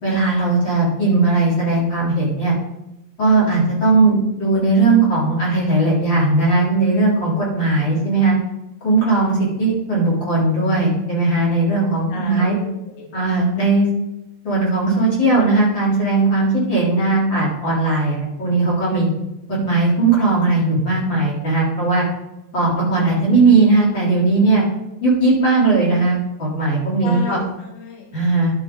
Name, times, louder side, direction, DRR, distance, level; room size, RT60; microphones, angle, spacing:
voice 1, 0.0-2.5 3.2-8.3 8.8-12.5 13.1-13.9 14.4-19.1 19.5-22.0 22.5-24.6 25.0-27.4 28.1-28.5, right 3 dB, 25° left, -6 dB, 3.3 m, -18 dB
voice 2, 12.1-13.1 27.0-28.1, left 3 dB, 75° left, 0 dB, 4.6 m, -33 dB
10.5 x 9.0 x 3.9 m, 0.89 s
omnidirectional pair, 5.9 m